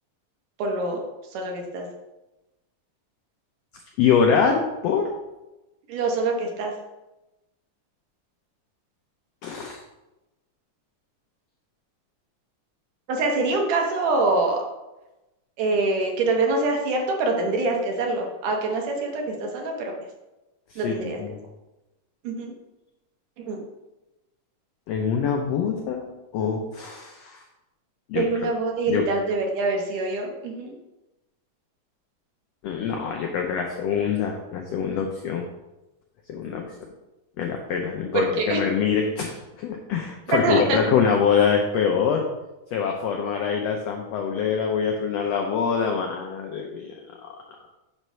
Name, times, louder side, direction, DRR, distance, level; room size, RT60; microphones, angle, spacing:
voice 1, 0.6-1.0 1.3-1.9 5.9-6.7 13.1-14.6 15.6-19.9 20.8-21.2 22.2-22.5 23.5-23.6 28.1-30.7 38.1-38.6 40.3-40.8, right 3 dB, 80° right, 1 dB, 2.6 m, -25 dB
voice 2, 4.0-5.1 9.4-9.8 20.7-21.4 24.9-26.1 26.3-27.4 28.1-28.5 28.9-29.1 32.6-35.5 36.3-36.7 37.4-42.3 42.7-47.3, left 6 dB, 90° left, 2 dB, 1.4 m, -24 dB
7.8 x 3.1 x 5.5 m, 1.0 s
omnidirectional pair, 3.7 m